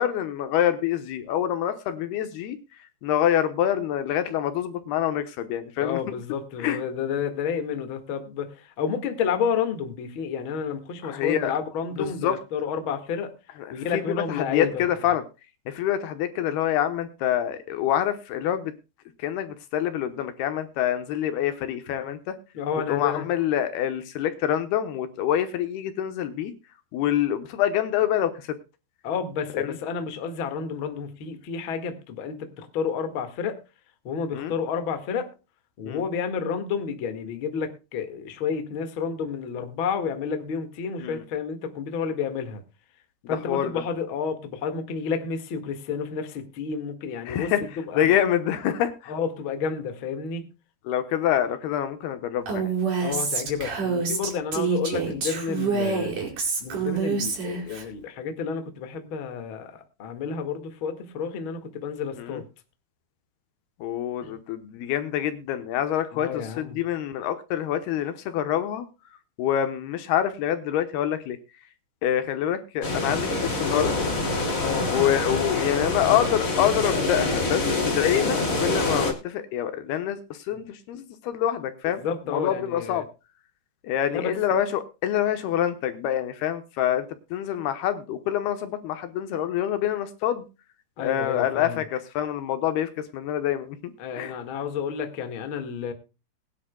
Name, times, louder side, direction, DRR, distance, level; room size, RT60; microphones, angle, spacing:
voice 1, 0.0-2.6 3.0-6.0 6.6-6.8 11.0-11.5 12.0-12.4 13.6-15.2 15.7-18.7 19.2-22.4 22.9-26.5 26.9-28.6 29.6-29.8 34.3-34.5 35.8-36.0 41.0-41.2 43.2-43.8 47.3-47.6 48.0-49.1 50.9-52.7 62.2-62.4 63.8-68.9 69.4-71.4 72.0-74.0 74.8-82.0 82.3-83.1 83.8-90.4 91.0-94.4, left 10 dB, 75° left, 10 dB, 2.8 m, -26 dB
voice 2, 5.8-13.3 13.7-14.8 22.5-23.2 29.0-33.6 34.0-35.3 35.8-42.6 43.3-48.1 49.1-50.4 53.0-56.1 56.6-62.4 64.2-64.3 66.1-66.8 74.6-74.9 80.5-80.6 82.0-83.0 84.1-84.3 91.0-91.8 94.0-95.9, left 6 dB, 45° left, 7 dB, 1.7 m, -30 dB
Female speech woman speaking, 52.5-57.8, right 5 dB, 50° right, 5.4 m, -27 dB
sound 1, 72.8-79.1, left 2 dB, 25° left, 2.1 m, -26 dB
21.5 x 10.5 x 2.2 m, 0.30 s
omnidirectional pair, 4.9 m